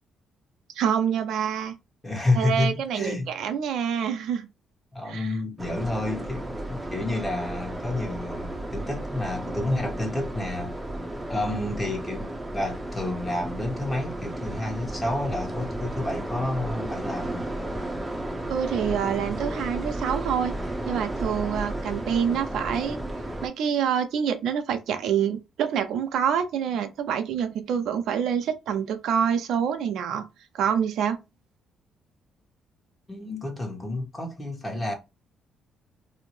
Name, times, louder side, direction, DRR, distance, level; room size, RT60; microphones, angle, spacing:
voice 1, 0.7-1.7 2.4-4.5 5.1-5.3 18.5-20.5 20.9-23.0 23.4-30.3 30.5-31.2, right 8 dB, 75° right, 0.4 m, -26 dB
voice 2, 2.0-3.3 4.9-10.7 11.3-17.4 33.1-34.9, left 2 dB, 15° left, 1.1 m, -30 dB
sound 1, 5.6-23.5, right 1 dB, 10° right, 0.6 m, -33 dB
2.6 x 2.0 x 3.0 m
cardioid pair, 80°, 0 cm